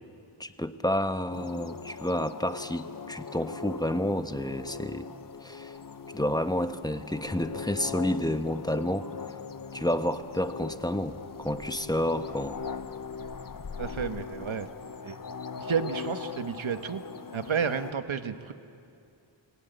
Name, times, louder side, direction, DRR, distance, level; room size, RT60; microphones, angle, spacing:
voice 1, 0.4-5.1 5.4-5.7 6.1-9.1 9.7-12.6, left 1 dB, 10° left, 9 dB, 1.0 m, -30 dB
sound 1, 1.3-17.9, left 5 dB, 40° left, 0.8 m, -40 dB
voice 2, 13.8-14.7 15.0-15.2 15.6-17.0 17.3-18.5, right 6 dB, 70° right, 9 dB, 1.3 m, -31 dB
26.0 x 17.5 x 9.1 m, 2.5 s
wide cardioid pair, 55°, 49 cm